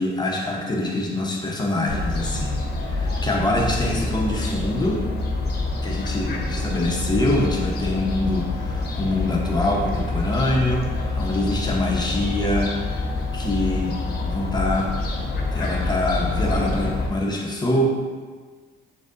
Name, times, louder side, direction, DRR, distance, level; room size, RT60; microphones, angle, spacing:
voice 1, 0.0-2.6 2.9-5.0 5.8-14.0 14.3-14.9 15.5-17.8, left 1 dB, 20° left, -2 dB, 0.9 m, -25 dB
Fowl, 1.9-17.1, left 2 dB, 50° left, 0.8 m, -26 dB
6.2 x 2.8 x 2.6 m, 1.5 s
cardioid pair, 90°, 20 cm